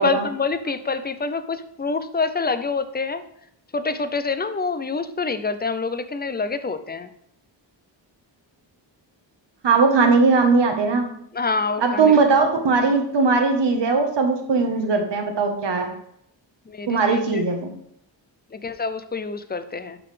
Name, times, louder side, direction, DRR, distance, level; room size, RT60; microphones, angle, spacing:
voice 1, 0.0-3.2 3.7-7.1 11.3-12.2 16.7-17.4 18.5-20.0, left 4 dB, 20° left, 11 dB, 0.5 m, -26 dB
voice 2, 9.6-11.1 11.8-15.9 16.9-17.7, right 4 dB, 65° right, 4 dB, 1.3 m, -19 dB
11.5 x 3.9 x 3.3 m, 0.72 s
wide cardioid pair, 100°, 46 cm